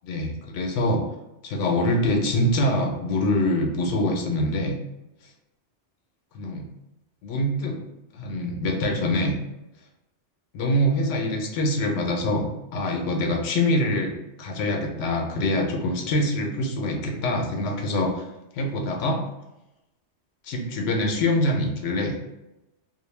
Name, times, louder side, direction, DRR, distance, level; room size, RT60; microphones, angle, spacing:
voice 1, 0.0-1.0 1.4-4.8 6.3-6.7 7.2-7.8 8.1-9.3 10.5-18.2 18.5-19.2 20.4-22.2, left 1 dB, 80° left, 1 dB, 0.9 m, -24 dB
2.2 x 2.1 x 3.1 m, 0.94 s
omnidirectional pair, 1.2 m